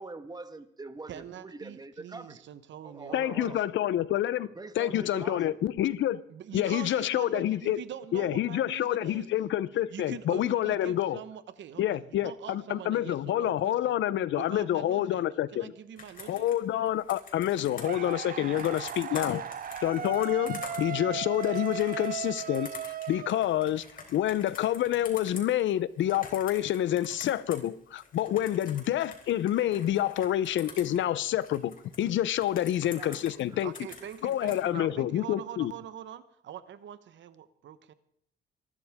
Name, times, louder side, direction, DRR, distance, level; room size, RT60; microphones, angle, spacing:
voice 1, 0.0-2.4 2.8-3.6 4.4-5.6 32.9-33.7 34.8-34.9, right 3 dB, 20° right, 1.4 m, -43 dB
voice 2, 1.1-3.6 6.3-9.3 9.9-14.0 14.3-15.2 15.5-16.5 18.9-19.3 28.4-28.5 33.6-37.9, right 10 dB, 70° right, 1.1 m, -44 dB
voice 3, 3.1-4.5 4.8-6.2 6.5-7.8 8.1-11.2 11.8-15.7 16.3-19.4 19.8-23.8 24.1-33.7 34.2-35.7, left 12 dB, 75° left, 0.7 m, -28 dB
Computer keyboard, 16.0-27.7 28.0-32.0 32.4-34.6, left 4 dB, 45° left, 3.9 m, -47 dB
sound 1, 17.8-23.9, right 9 dB, 45° right, 0.7 m, -37 dB
25.0 x 12.0 x 3.6 m
cardioid pair, 90°, 20 cm